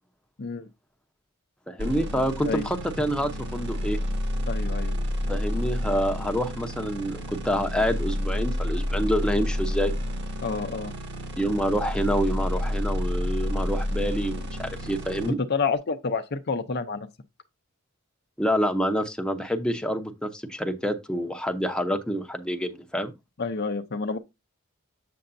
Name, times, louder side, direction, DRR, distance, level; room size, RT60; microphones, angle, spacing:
voice 1, 1.7-4.0 5.3-9.9 11.4-15.4 18.4-23.1, equal, 5° left, 0.7 m, -27 dB
sound 1, 1.8-15.3, equal, 55° right, 1.9 m, -30 dB
voice 2, 4.5-5.0 10.4-10.9 15.5-17.1 23.4-24.2, left 4 dB, 50° left, 0.6 m, -29 dB
7.7 x 6.8 x 2.6 m
head